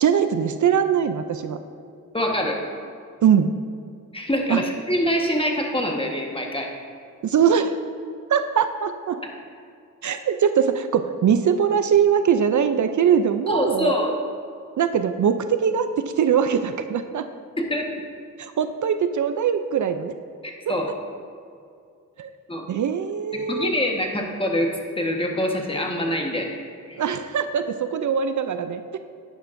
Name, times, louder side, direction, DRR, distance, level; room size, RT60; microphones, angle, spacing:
voice 1, 0.0-1.6 3.2-3.5 4.5-4.6 7.2-7.7 8.3-9.2 10.0-13.9 14.8-17.3 18.4-20.1 20.7-20.8 22.2-22.3 22.7-23.7 27.0-28.8, right 7 dB, 65° right, 9 dB, 0.5 m, -21 dB
voice 2, 2.1-2.6 4.1-6.7 13.5-14.1 17.6-17.9 20.4-20.9 22.5-22.7 23.3-26.6 26.9-27.0, equal, 15° left, 1 dB, 1.3 m, -25 dB
10.0 x 10.0 x 2.6 m, 2.3 s
cardioid pair, 70°, 32 cm